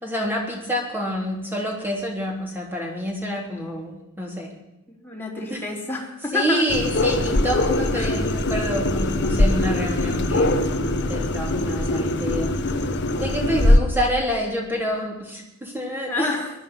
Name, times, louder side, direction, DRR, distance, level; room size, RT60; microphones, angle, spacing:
voice 1, 0.0-4.5 5.5-5.6 6.3-12.8 13.2-16.3, equal, 10° right, -1 dB, 3.8 m, -28 dB
voice 2, 5.0-6.7 7.9-8.2 16.1-16.5, left 2 dB, 10° left, -2 dB, 3.4 m, -28 dB
sound 1, 6.7-13.8, left 1 dB, 50° left, 1.2 m, -22 dB
20.0 x 12.0 x 5.8 m, 0.91 s
head